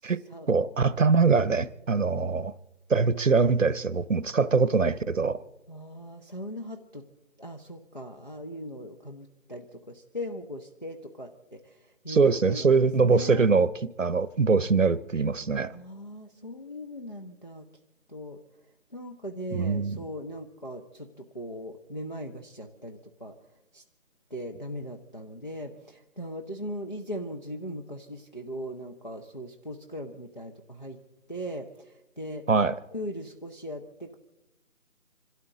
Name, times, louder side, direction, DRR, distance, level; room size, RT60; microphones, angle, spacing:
voice 1, 0.5-2.5 2.9-5.4 12.1-13.7 14.0-15.8 19.5-20.0 32.5-32.8, right 4 dB, 60° right, 0.9 m, -23 dB
voice 2, 5.7-7.1 7.4-13.5 15.7-17.7 18.1-18.4 18.9-23.3 23.7-23.8 24.3-31.0 31.3-32.5 32.9-34.2, equal, 30° left, 0.8 m, -39 dB
27.0 x 13.0 x 3.8 m
figure-of-eight pair, 175°, 44 cm